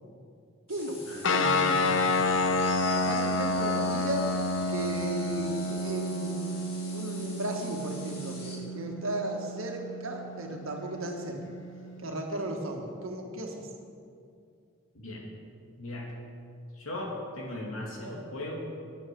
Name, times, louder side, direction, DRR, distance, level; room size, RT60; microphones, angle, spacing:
sound 1, 0.7-8.6, left 2 dB, 50° left, 2.7 m, -45 dB
voice 1, 0.7-1.0 1.3-2.6 2.9-4.4 4.7-6.5 6.9-11.4 12.0-13.7, right 1 dB, 80° right, 2 dB, 1.7 m, -35 dB
sound 2, 1.2-12.1, left 2 dB, 65° left, 0.8 m, -30 dB
voice 2, 15.8-16.1 16.7-18.6, left 1 dB, 85° left, -1 dB, 2.6 m, -37 dB
9.8 x 9.5 x 6.9 m, 2.4 s
head